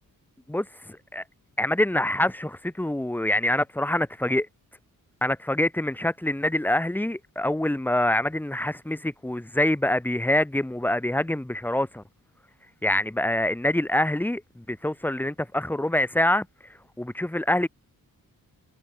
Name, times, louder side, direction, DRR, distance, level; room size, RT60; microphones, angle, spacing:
voice 1, 0.5-1.2 1.6-4.5 5.2-12.0 12.8-16.5 17.0-17.7, left 1 dB, 5° left, 1.0 m, -25 dB
cardioid pair, 95°, 35 cm